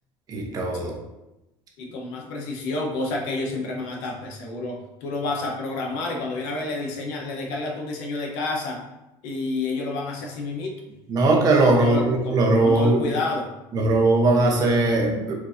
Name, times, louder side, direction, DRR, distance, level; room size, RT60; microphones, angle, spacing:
voice 1, 0.3-0.9 11.1-13.0 13.7-15.3, right 2 dB, 35° right, 0 dB, 0.8 m, -19 dB
voice 2, 1.8-8.8 9.2-10.7 11.6-13.5, left 3 dB, 85° left, 0 dB, 0.8 m, -29 dB
4.5 x 2.6 x 2.6 m, 0.96 s
cardioid pair, 145°, 11 cm